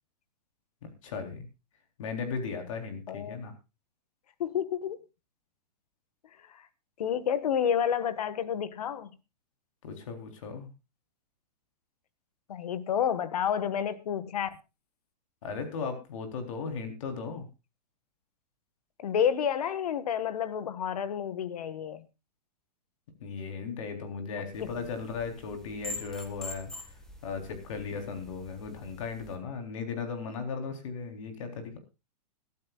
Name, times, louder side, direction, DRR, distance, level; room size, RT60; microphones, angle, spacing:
voice 1, 1.0-1.5 2.0-3.5 9.8-10.7 15.4-17.5 23.2-26.7 27.2-31.8, left 5 dB, 50° left, 3.8 m, -36 dB
voice 2, 3.1-3.4 4.4-5.0 6.5-6.7 7.0-9.1 12.5-14.5 19.0-22.0 24.4-24.7, left 8 dB, 65° left, 1.6 m, -30 dB
sound 1, 24.5-29.4, left 1 dB, ahead, 1.5 m, -45 dB
22.0 x 12.0 x 2.4 m
supercardioid pair, 175°, 21 cm